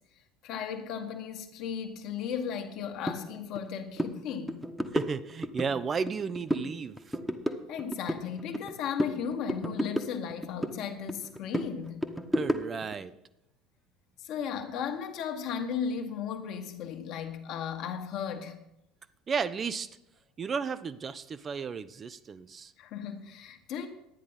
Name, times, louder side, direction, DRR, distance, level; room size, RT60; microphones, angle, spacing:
voice 1, 0.4-4.6 7.7-12.1 14.2-18.6 22.8-23.9, left 7 dB, 50° left, 1.5 m, -35 dB
sound 1, 3.1-3.2 3.5-3.7 4.0-4.1 4.5-5.7 6.1-6.7 7.0-8.7 9.0-10.8 11.1-12.9, equal, ahead, 1.2 m, -32 dB
voice 2, 4.9-7.2 12.3-13.1 19.3-19.9 20.4-22.7, right 5 dB, 30° right, 0.5 m, -33 dB
11.5 x 9.6 x 5.7 m
figure-of-eight pair, 65°, 0 cm